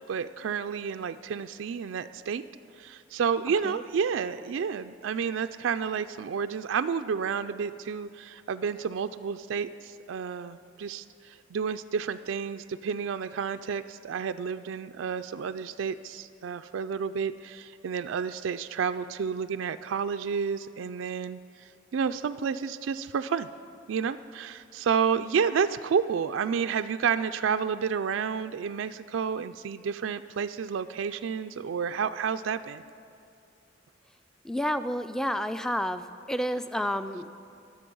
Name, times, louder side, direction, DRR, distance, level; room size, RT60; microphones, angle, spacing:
voice 1, 0.0-2.4 2.8-21.4 21.9-23.5 23.9-32.8, right 6 dB, 90° right, 9 dB, 0.4 m, -30 dB
voice 2, 34.4-37.3, equal, 5° left, 11 dB, 0.4 m, -30 dB
22.5 x 7.6 x 5.4 m, 2.4 s
head